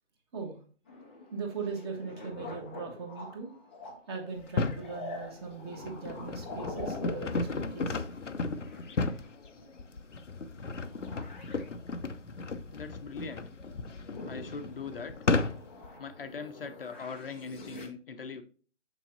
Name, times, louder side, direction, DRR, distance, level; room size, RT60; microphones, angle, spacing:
sound 1, 0.9-10.2 10.5-11.7 12.2-13.3 13.7-17.9, left 2 dB, 10° left, 0.5 m, -46 dB
voice 1, 1.3-3.5 4.1-8.0, right 5 dB, 20° right, 3 dB, 1.3 m, -39 dB
sound 2, 4.4-4.9 5.5-15.9, left 3 dB, 90° left, 0.7 m, -34 dB
voice 2, 12.7-13.5 14.3-15.2 16.0-18.4, left 5 dB, 50° left, 8 dB, 0.7 m, -41 dB
7.0 x 6.0 x 2.6 m, 0.39 s
figure-of-eight pair, 145°, 36 cm